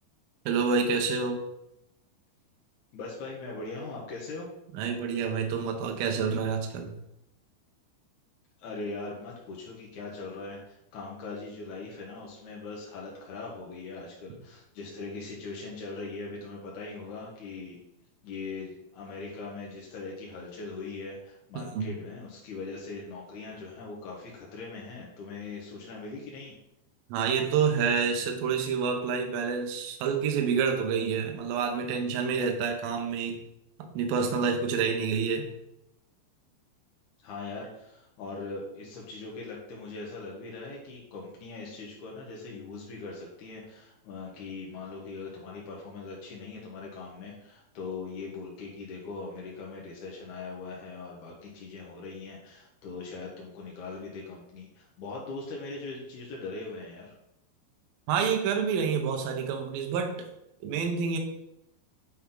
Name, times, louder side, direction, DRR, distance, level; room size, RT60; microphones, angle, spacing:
voice 1, 0.5-1.4 4.7-6.9 21.5-21.9 27.1-33.4 33.9-35.5 58.1-60.1 60.6-61.2, right 6 dB, 75° right, 3 dB, 2.3 m, -28 dB
voice 2, 2.9-4.5 8.6-17.8 18.2-26.5 37.2-57.1, left 3 dB, 70° left, -3 dB, 1.8 m, -40 dB
9.3 x 4.3 x 3.8 m, 0.84 s
omnidirectional pair, 5.1 m